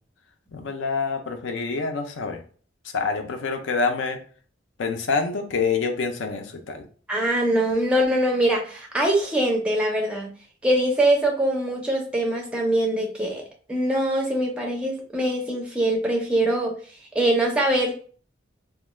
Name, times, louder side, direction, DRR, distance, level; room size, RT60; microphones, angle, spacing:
voice 1, 0.5-2.4 2.9-4.2 4.8-6.8, left 4 dB, 85° left, 5 dB, 0.5 m, -26 dB
voice 2, 7.1-10.3 10.6-13.4 13.7-16.7 17.1-17.9, right 1 dB, 5° right, 0 dB, 0.4 m, -23 dB
2.3 x 2.1 x 3.1 m, 0.44 s
head